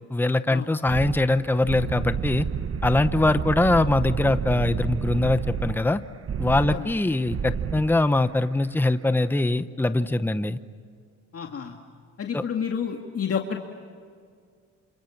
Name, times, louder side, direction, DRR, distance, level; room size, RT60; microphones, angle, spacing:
voice 1, 0.1-2.5 2.8-6.0 6.4-10.6 12.3-12.4, left 2 dB, 5° left, 12 dB, 0.9 m, -22 dB
sound 1, 0.9-5.8 6.2-6.8 7.2-7.9, right 6 dB, 50° right, 1.4 m, -29 dB
voice 2, 11.3-11.8 12.2-13.6, left 7 dB, 50° left, 2 dB, 2.2 m, -30 dB
28.0 x 27.5 x 7.3 m, 2.1 s
cardioid pair, 90°, 30 cm